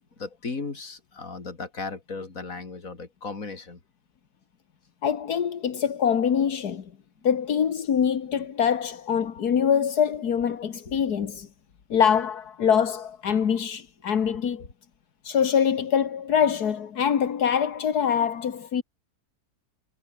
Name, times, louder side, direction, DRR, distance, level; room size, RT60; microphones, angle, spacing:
voice 1, 0.2-3.8 10.9-11.0, left 4 dB, 60° left, 3.5 m, -36 dB
voice 2, 5.0-6.9 7.2-11.5 11.9-14.7 15.2-18.8, left 8 dB, 80° left, 2.0 m, -24 dB
omnidirectional pair, 1.7 m